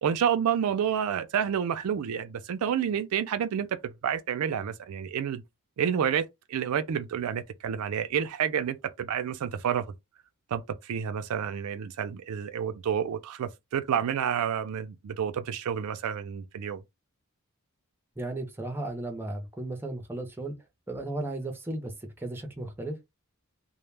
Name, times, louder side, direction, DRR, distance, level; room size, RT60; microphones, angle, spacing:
voice 1, 0.0-5.4 5.8-9.8 10.5-16.8, right 8 dB, 80° right, 0.4 m, -29 dB
voice 2, 18.2-20.6 20.9-23.1, right 2 dB, 10° right, 0.5 m, -35 dB
2.1 x 2.1 x 3.2 m
head